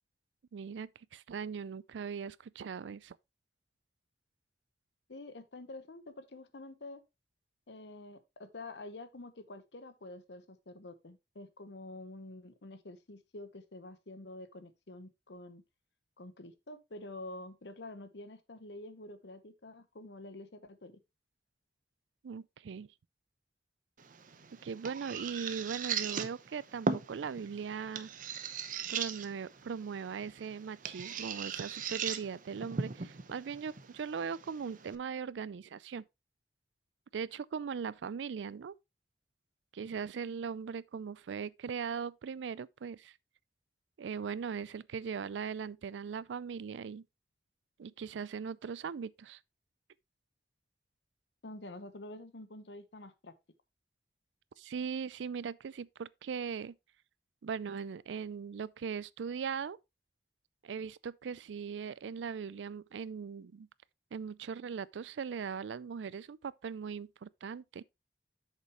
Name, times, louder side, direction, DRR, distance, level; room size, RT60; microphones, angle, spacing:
voice 1, 0.5-3.2 22.2-22.9 24.6-28.1 28.9-36.0 37.1-38.7 39.7-43.1 44.0-47.0 47.8-49.4 54.6-56.7 57.4-59.8 60.6-63.7 64.1-67.8, right 6 dB, 90° right, 0.4 m, -39 dB
voice 2, 5.1-7.0 7.7-15.6 16.2-21.0 51.4-53.3, left 2 dB, 75° left, 1.0 m, -48 dB
sound 1, 24.0-35.0, right 5 dB, 50° right, 0.7 m, -39 dB
8.1 x 6.6 x 3.0 m
head